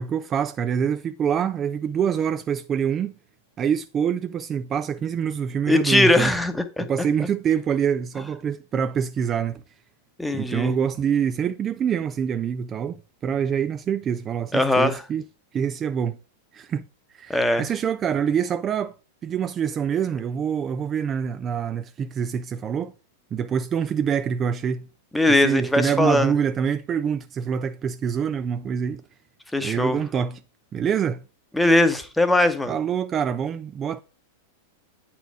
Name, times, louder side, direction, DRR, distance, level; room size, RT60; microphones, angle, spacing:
voice 1, 0.0-3.1 3.6-6.3 6.8-9.6 10.3-13.0 13.2-15.2 15.5-16.2 16.5-16.8 17.1-18.9 19.2-22.9 23.3-24.9 25.3-29.0 29.6-30.4 30.7-31.2 32.7-34.0, right 7 dB, 30° right, 0.3 m, -25 dB
voice 2, 5.7-6.9 10.2-10.7 14.5-15.0 17.3-17.6 25.1-26.3 29.5-30.0 31.5-32.7, left 1 dB, 5° left, 0.9 m, -20 dB
9.0 x 4.3 x 4.7 m
figure-of-eight pair, 95°, 0 cm